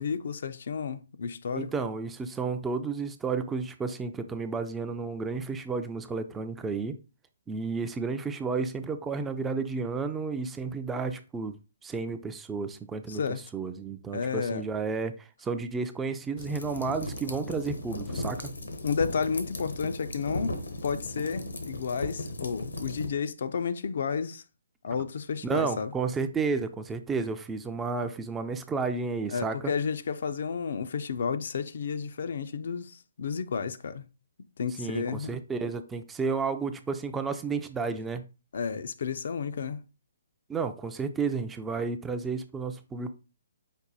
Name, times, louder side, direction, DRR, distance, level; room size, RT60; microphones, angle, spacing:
voice 1, 0.0-1.8 13.1-13.4 14.1-14.6 18.8-24.4 24.8-25.9 29.3-34.1 34.6-35.3 38.5-39.8, left 6 dB, 60° left, 0.4 m, -32 dB
voice 2, 1.5-7.0 7.5-11.6 11.8-13.2 13.5-18.5 25.4-29.7 34.8-38.3 40.5-43.1, right 4 dB, 10° right, 0.4 m, -32 dB
sound 1, 16.4-23.1, left 1 dB, 80° left, 0.9 m, -36 dB
5.3 x 2.2 x 4.0 m
hypercardioid pair, 140°, 0 cm